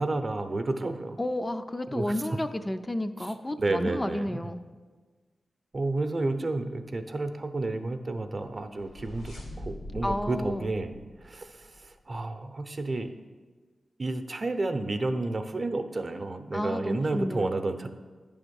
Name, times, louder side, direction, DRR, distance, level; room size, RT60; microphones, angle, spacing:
voice 1, 0.0-1.2 1.9-2.1 3.2-4.3 5.7-13.1 14.0-17.9, right 2 dB, 45° right, 8 dB, 0.6 m, -31 dB
voice 2, 1.2-4.6 10.0-10.7 16.5-17.6, left 1 dB, 20° left, 8 dB, 0.4 m, -31 dB
sound 1, 8.4-12.0, left 1 dB, 90° left, 2.3 m, -42 dB
9.2 x 3.6 x 6.9 m, 1.4 s
cardioid pair, 60°, 0 cm